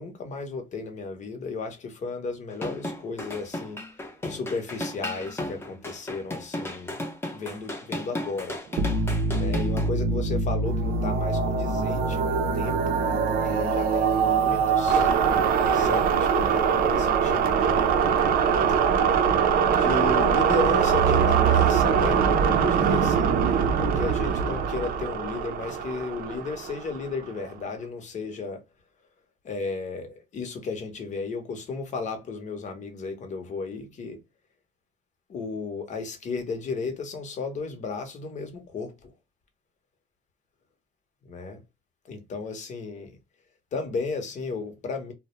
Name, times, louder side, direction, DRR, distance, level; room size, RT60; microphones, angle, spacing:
voice 1, 0.0-3.8 4.3-7.0 7.3-8.6 9.3-15.1 15.7-18.2 19.7-28.6 29.4-34.2 35.3-39.1 41.2-41.6 42.1-43.2 43.7-45.1, left 4 dB, 45° left, 0.8 m, -34 dB
sound 1, 2.5-9.9, left 1 dB, 15° left, 0.6 m, -35 dB
sound 2, 8.8-27.2, right 6 dB, 60° right, 0.5 m, -23 dB
2.3 x 2.1 x 2.9 m
cardioid pair, 110°, 17 cm